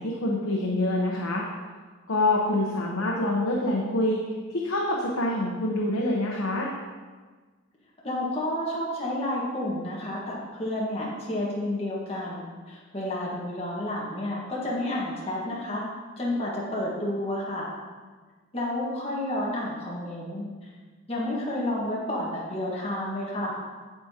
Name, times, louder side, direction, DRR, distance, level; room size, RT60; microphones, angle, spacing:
voice 1, 0.0-1.4 2.1-6.7, left 1 dB, 70° left, -2 dB, 0.9 m, -26 dB
voice 2, 8.0-15.8 16.2-17.7 18.5-20.7 21.1-23.6, left 1 dB, 25° left, -6 dB, 1.4 m, -30 dB
8.4 x 7.9 x 2.9 m, 1.4 s
head